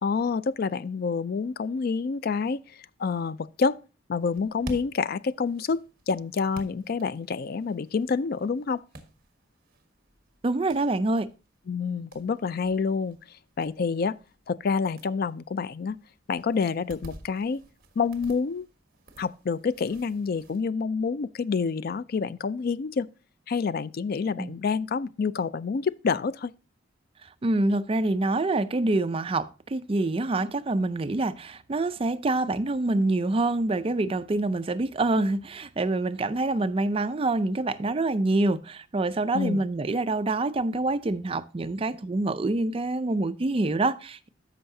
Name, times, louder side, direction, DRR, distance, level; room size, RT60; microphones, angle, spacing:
voice 1, 0.0-3.8 4.1-8.8 11.7-13.2 13.6-14.2 14.5-16.0 16.3-17.6 18.0-18.7 19.2-23.1 23.5-26.5 39.3-39.6, left 5 dB, 50° left, 0.4 m, -28 dB
sound 1, 4.2-20.6, right 1 dB, 50° right, 1.4 m, -50 dB
voice 2, 10.4-11.3 24.4-24.5 27.4-44.3, right 2 dB, 30° right, 0.4 m, -26 dB
13.5 x 5.6 x 2.7 m
head